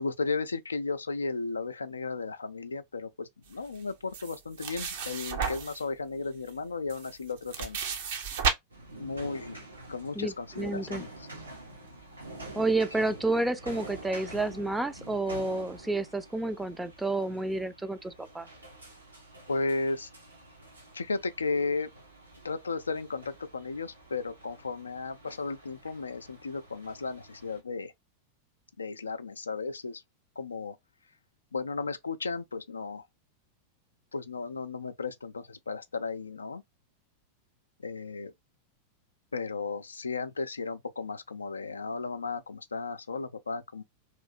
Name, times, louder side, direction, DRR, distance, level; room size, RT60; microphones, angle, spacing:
voice 1, 0.0-7.8 9.0-9.6 9.9-11.3 19.5-20.1 20.9-21.9 22.4-27.9 28.8-30.0 30.4-30.8 31.5-33.1 34.1-36.6 37.8-38.3 39.3-43.8, left 4 dB, 75° left, 0.3 m, -34 dB
sound 1, 4.1-5.8 6.5-6.6 6.9-8.5, right 5 dB, 55° right, 0.6 m, -32 dB
sound 2, 8.7-27.6, right 2 dB, 85° right, 1.1 m, -47 dB
voice 2, 10.2-11.0 12.6-18.5, right 2 dB, 5° right, 0.4 m, -30 dB
3.0 x 2.7 x 2.4 m
figure-of-eight pair, 90°, 0 cm